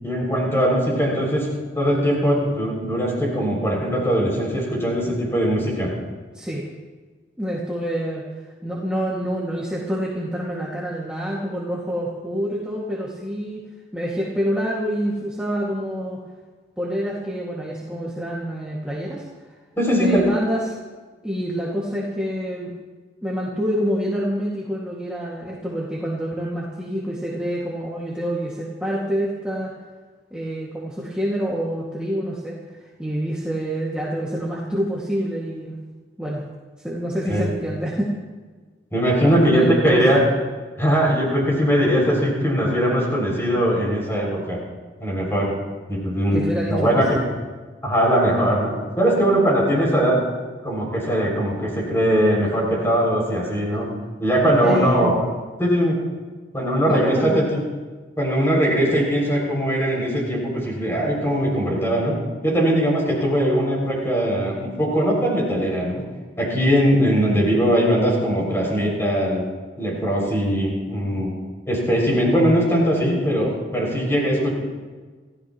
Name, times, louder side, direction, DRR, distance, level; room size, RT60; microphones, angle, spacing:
voice 1, 0.0-1.5 1.7-5.9 19.8-20.2 37.3-37.5 38.9-40.2 40.8-44.6 45.0-45.5 45.9-47.2 47.8-50.2 50.6-53.9 54.2-55.1 55.6-56.0 56.5-57.6 58.2-62.1 62.4-66.0 66.4-69.4 69.8-71.3 71.7-74.5, equal, 15° left, -3 dB, 6.5 m, -20 dB
voice 2, 6.3-6.7 7.4-8.2 8.6-13.6 13.9-16.2 16.8-19.2 19.9-20.8 21.2-22.7 23.2-29.7 30.3-35.8 36.2-36.4 36.8-38.1 39.2-40.0 46.3-47.0 54.6-55.1 56.9-57.4, equal, 5° right, -6 dB, 2.2 m, -27 dB
28.5 x 16.0 x 3.1 m, 1.4 s
head